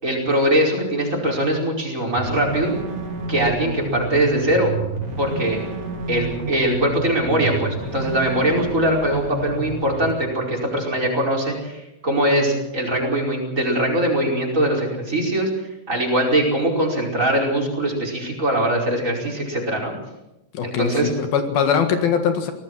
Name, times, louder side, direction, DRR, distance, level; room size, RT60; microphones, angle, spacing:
voice 1, 0.0-2.7 3.3-4.7 5.2-5.6 6.1-15.5 15.9-19.9 20.6-21.1, right 1 dB, 20° right, 0 dB, 5.2 m, -21 dB
sound 1, 2.2-10.1, right 2 dB, 40° right, 3.6 m, -30 dB
voice 2, 20.5-22.5, left 7 dB, 75° left, 7 dB, 3.5 m, -21 dB
25.0 x 18.0 x 6.3 m, 0.92 s
omnidirectional pair, 4.4 m